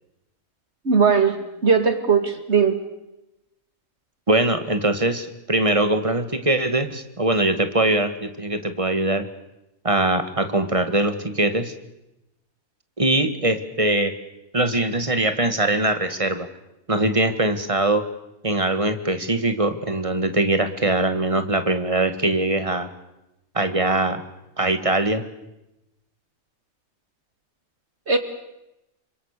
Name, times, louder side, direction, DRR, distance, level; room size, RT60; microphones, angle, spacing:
voice 1, 0.9-2.7 28.1-28.2, right 5 dB, 50° right, 8 dB, 2.4 m, -19 dB
voice 2, 4.3-9.2 9.8-11.7 13.0-14.1 14.5-16.5 16.9-18.0 18.4-22.9 23.5-24.2 24.6-25.2, right 2 dB, 25° right, 9 dB, 2.0 m, -22 dB
29.0 x 25.5 x 6.8 m, 0.91 s
omnidirectional pair, 1.5 m